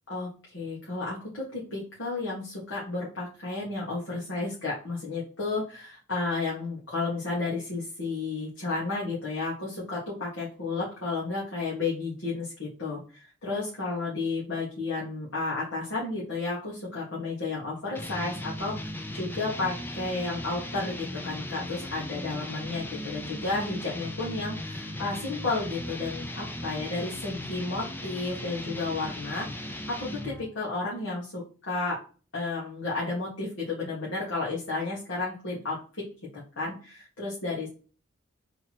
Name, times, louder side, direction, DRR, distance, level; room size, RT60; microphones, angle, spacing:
voice 1, 0.1-32.0 32.3-35.8 36.3-37.7, left 3 dB, 65° left, -6 dB, 1.7 m, -32 dB
sound 1, 18.0-30.5, left 1 dB, 10° left, 0.5 m, -37 dB
3.9 x 3.0 x 4.3 m, 0.37 s
head